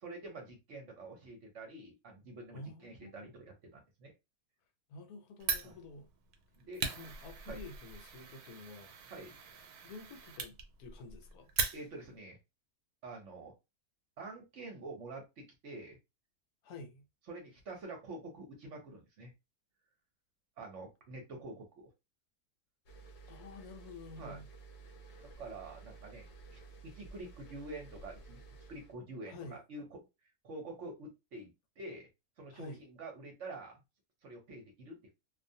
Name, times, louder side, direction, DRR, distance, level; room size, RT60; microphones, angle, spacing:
voice 1, 0.0-4.1 5.6-5.8 6.6-6.9 7.5-7.6 9.1-9.4 11.7-12.4 13.0-13.5 14.2-16.0 17.3-19.3 20.6-21.9 24.2-24.4 25.2-28.4 28.7-30.0 30.4-32.1 32.4-33.8 34.2-35.1, right 2 dB, 60° right, 1.0 m, -47 dB
voice 2, 2.5-3.3 4.9-6.1 6.8-8.9 9.8-11.5 16.6-17.1 23.3-24.5 29.3-29.6 32.5-32.8, left 2 dB, 75° left, 1.1 m, -49 dB
Fire, 5.4-12.2, right 5 dB, 80° right, 1.1 m, -40 dB
sound 1, 22.9-28.9, right 4 dB, 60° left, 0.7 m, -53 dB
2.5 x 2.2 x 2.6 m
omnidirectional pair, 1.7 m